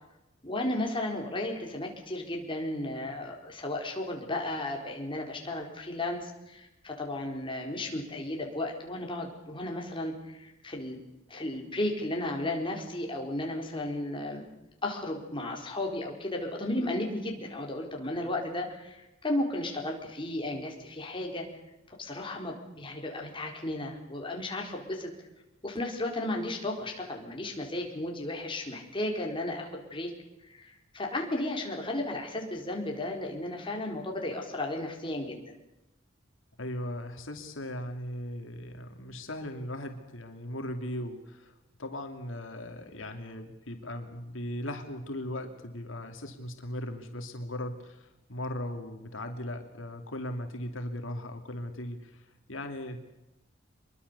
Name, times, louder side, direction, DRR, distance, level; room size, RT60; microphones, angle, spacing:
voice 1, 0.4-11.0 11.3-14.4 14.8-21.5 22.0-25.1 25.6-30.1 30.4-35.5, left 1 dB, 25° left, 1 dB, 4.2 m, -34 dB
voice 2, 36.6-41.5 41.8-53.0, left 1 dB, 85° left, 5 dB, 2.7 m, -38 dB
25.5 x 22.5 x 6.9 m, 0.94 s
head